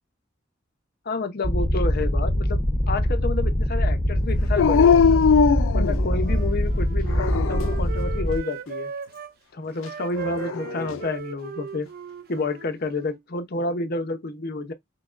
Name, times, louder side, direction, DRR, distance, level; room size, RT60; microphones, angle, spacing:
voice 1, 1.1-2.6 2.9-5.3 5.7-8.9 9.5-11.9 12.3-14.7, left 3 dB, 55° left, 0.7 m, -29 dB
sound 1, 1.4-8.4, equal, 15° left, 0.6 m, -23 dB
Dog, 4.6-6.5 7.1-7.9 10.2-11.0, left 6 dB, 85° left, 0.3 m, -21 dB
Wind instrument woodwind instrument, 6.2-9.3 9.8-13.2, right 6 dB, 50° right, 0.5 m, -37 dB
5.9 x 2.1 x 2.5 m
head